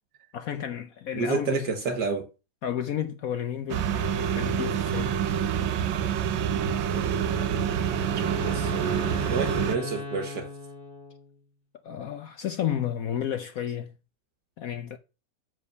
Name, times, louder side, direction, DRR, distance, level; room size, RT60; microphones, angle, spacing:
voice 1, 0.3-1.7 2.6-5.2 11.8-13.9 14.6-15.0, left 9 dB, 65° left, 0.9 m, -32 dB
voice 2, 1.1-2.3 6.9-7.2 8.2-10.5, right 5 dB, 65° right, 1.6 m, -30 dB
sound 1, 3.7-9.8, right 8 dB, 85° right, 1.6 m, -27 dB
Wind instrument woodwind instrument, 7.2-11.4, left 3 dB, 30° left, 2.1 m, -38 dB
7.6 x 6.4 x 5.3 m
omnidirectional pair, 2.0 m